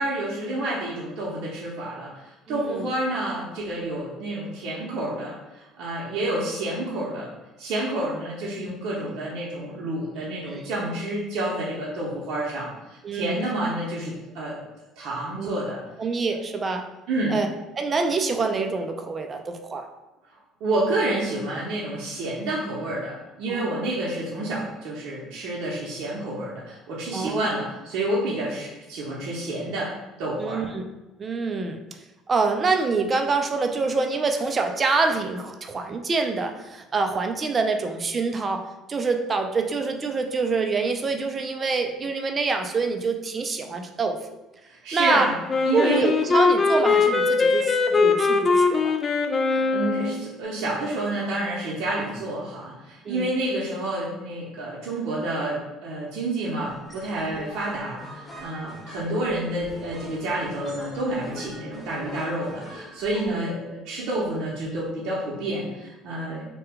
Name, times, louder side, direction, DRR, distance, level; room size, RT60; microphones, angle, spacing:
voice 1, 0.0-7.3 7.6-14.6 15.0-15.8 17.1-17.4 20.6-29.9 30.2-30.6 44.7-45.3 45.7-46.1 49.4-66.5, right 1 dB, 70° right, -6 dB, 0.7 m, -29 dB
voice 2, 2.5-2.9 8.7-8.8 10.5-10.6 13.0-13.4 15.4-15.6 16.0-16.8 17.3-17.5 17.8-19.9 23.5-23.8 27.1-27.5 30.4-30.9 31.2-31.8 32.3-44.2 44.9-45.3 45.7-48.9 53.1-53.3 63.3-63.4, right 4 dB, 35° right, 5 dB, 0.4 m, -26 dB
Wind instrument woodwind instrument, 45.5-50.2, left 4 dB, 35° left, 0.3 m, -21 dB
sound 1, 56.6-63.3, left 1 dB, 10° left, 1.3 m, -43 dB
2.8 x 2.2 x 3.5 m, 1.0 s
supercardioid pair, 75°, 0 cm